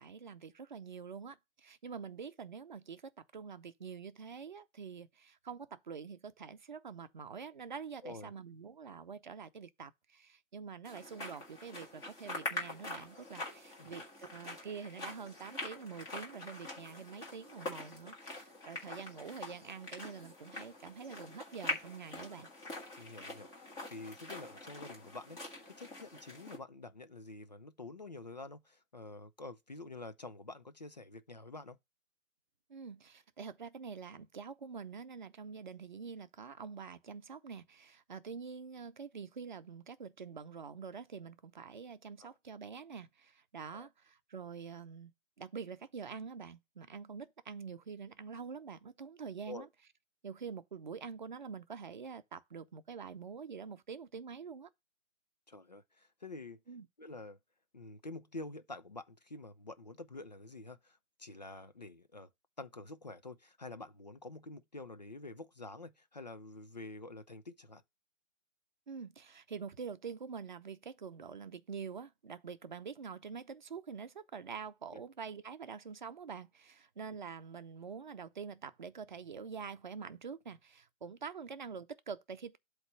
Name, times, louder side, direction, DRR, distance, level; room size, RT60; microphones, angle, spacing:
voice 1, 0.0-22.5 32.7-45.1 45.4-49.7 50.2-54.7 56.7-56.9 68.9-82.6, right 6 dB, 35° right, 0.8 m, -46 dB
sound 1, 10.9-26.6, left 2 dB, 10° left, 1.5 m, -44 dB
voice 2, 23.0-31.8 42.2-42.3 43.7-43.9 49.5-49.7 55.5-56.6 57.0-57.4 57.7-62.3 62.6-67.8 74.9-75.0, left 2 dB, 35° left, 0.5 m, -48 dB
8.0 x 3.2 x 6.2 m
figure-of-eight pair, 145°, 40 cm